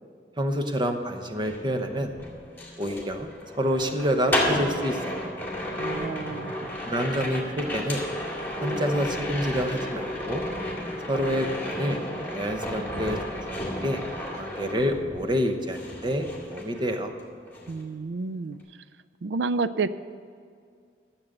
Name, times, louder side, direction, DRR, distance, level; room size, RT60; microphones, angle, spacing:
voice 1, 0.4-2.1 2.8-5.3 6.9-8.0 8.6-10.4 11.1-12.0 12.3-14.0 14.3-17.1, equal, 25° right, 6 dB, 0.9 m, -28 dB
sound 1, 1.3-15.4 15.7-17.2 17.5-17.8, left 1 dB, 10° left, 2.2 m, -32 dB
voice 2, 5.8-6.7 17.7-18.6 19.2-19.9, right 4 dB, 75° right, 14 dB, 0.4 m, -30 dB
12.5 x 7.3 x 6.6 m, 2.2 s
head